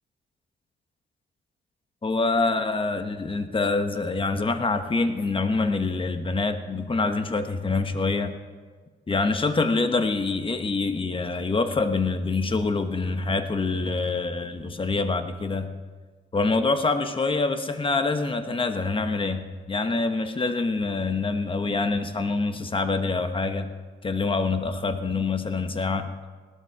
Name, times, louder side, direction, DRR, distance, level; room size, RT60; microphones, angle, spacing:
voice 1, 2.0-8.3 9.1-15.7 16.3-23.7 24.0-26.1, left 3 dB, 25° left, 8 dB, 1.2 m, -25 dB
18.0 x 12.5 x 4.7 m, 1.5 s
cardioid pair, 90°, 20 cm